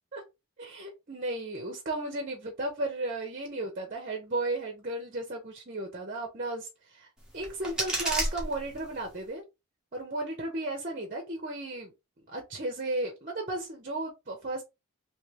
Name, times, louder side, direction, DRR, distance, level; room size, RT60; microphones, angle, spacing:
voice 1, 0.6-7.1 7.3-9.4 9.9-11.9 12.3-14.6, right 2 dB, 40° right, 0.9 m, -34 dB
sound 1, 7.2-9.2, right 1 dB, 5° right, 1.1 m, -33 dB
3.2 x 3.0 x 3.1 m
head